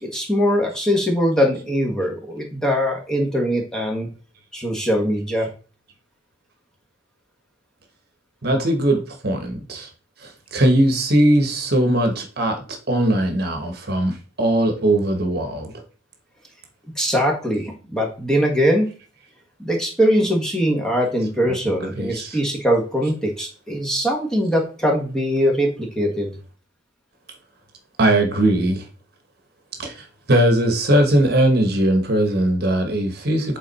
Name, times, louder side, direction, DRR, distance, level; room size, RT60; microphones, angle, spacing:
voice 1, 0.0-4.1 4.5-5.5 17.0-18.9 19.6-26.3, equal, 5° left, 1.4 m, -21 dB
voice 2, 8.4-9.9 10.2-12.6 12.9-15.7 21.4-22.4 28.0-28.8 29.8-33.6, right 1 dB, 50° right, 1.2 m, -20 dB
8.3 x 3.8 x 4.1 m
head